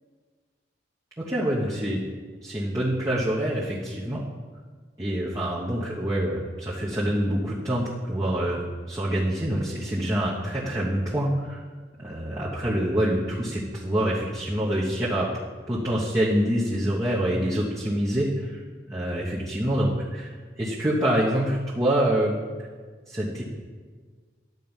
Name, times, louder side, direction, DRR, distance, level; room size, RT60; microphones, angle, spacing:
voice 1, 1.2-2.0 2.4-4.2 5.0-11.6 12.0-15.3 15.7-18.6 18.9-20.3 20.6-22.3 23.1-23.4, right 1 dB, 15° right, -6 dB, 1.1 m, -26 dB
11.0 x 4.6 x 7.2 m, 1.5 s
head